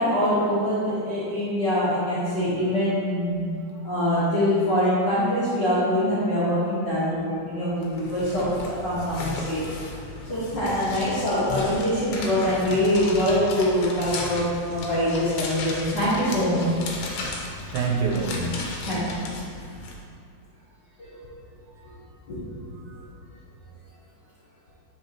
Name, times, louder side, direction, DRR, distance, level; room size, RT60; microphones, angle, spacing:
voice 1, 0.0-3.5 3.8-9.6 10.3-16.7 18.9-19.3 21.0-21.1 22.3-22.7, left 1 dB, 50° left, -12 dB, 1.4 m, -24 dB
sound 1, 7.8-19.9, left 3 dB, 75° left, 2.2 m, -35 dB
voice 2, 10.6-11.6 17.7-19.0, right 4 dB, 85° right, -1 dB, 2.6 m, -29 dB
8.9 x 5.2 x 3.0 m, 2.5 s
omnidirectional pair, 4.2 m